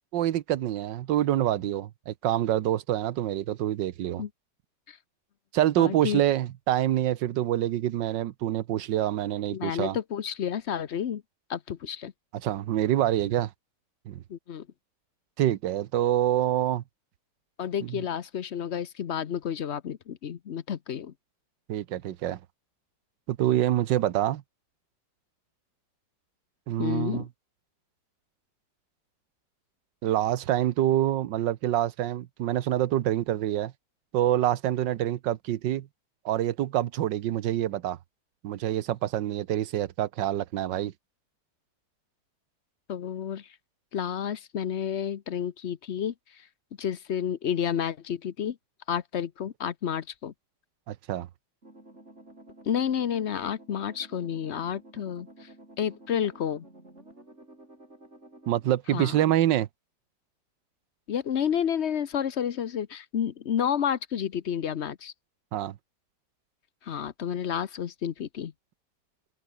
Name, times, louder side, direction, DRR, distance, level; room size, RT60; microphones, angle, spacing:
voice 1, 0.1-4.2 5.5-10.0 12.4-13.5 14.1-14.2 15.4-16.8 17.9-18.0 21.7-22.4 23.3-24.4 26.7-27.2 30.0-33.7 34.1-35.9 36.2-38.0 38.4-40.9 50.9-51.3 58.5-59.7 65.5-65.7, right 12 dB, 85° right, 1.5 m, -26 dB
voice 2, 5.8-6.2 9.5-11.2 11.5-12.1 14.3-14.7 17.6-21.1 26.8-27.3 42.9-43.6 43.9-46.5 46.8-48.6 48.9-50.3 52.6-55.5 55.8-56.6 58.9-59.2 61.1-65.1 66.8-68.5, left 8 dB, 50° left, 0.9 m, -30 dB
sound 1, 51.6-58.7, right 1 dB, 40° right, 7.3 m, -52 dB
omnidirectional pair, 1.9 m